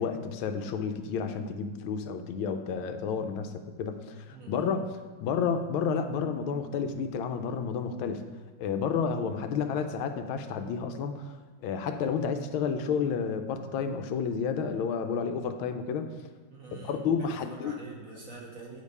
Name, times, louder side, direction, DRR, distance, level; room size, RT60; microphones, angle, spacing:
voice 1, 0.0-3.5 3.8-4.9 5.2-8.2 8.6-11.3 11.6-16.1 16.7-17.8, left 6 dB, 80° left, 8 dB, 1.5 m, -31 dB
voice 2, 4.3-4.8 16.5-18.8, right 3 dB, 45° right, -2 dB, 1.6 m, -45 dB
8.6 x 5.1 x 5.4 m, 1.3 s
omnidirectional pair, 2.2 m